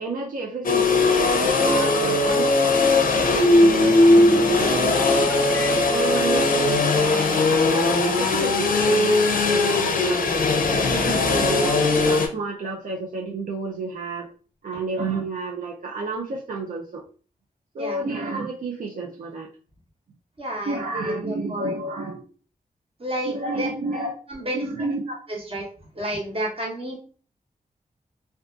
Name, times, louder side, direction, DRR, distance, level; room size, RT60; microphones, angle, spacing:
voice 1, 0.0-2.9 3.3-5.3 5.9-10.2 10.7-14.3 14.6-17.0 17.7-19.5 20.7-22.2 23.2-24.1 24.5-25.0, right 3 dB, 70° right, -1 dB, 0.4 m, -31 dB
sound 1, 0.6-12.3, left 2 dB, 70° left, 0.5 m, -19 dB
sound 2, 3.6-8.2 8.5-8.8, left 1 dB, 15° left, 0.4 m, -34 dB
voice 2, 20.4-21.8 23.0-23.7 24.3-24.7 25.3-25.7 25.9-27.0, right 1 dB, 40° right, -2 dB, 0.9 m, -30 dB
2.5 x 2.3 x 2.3 m, 0.40 s
wide cardioid pair, 100°, 15 cm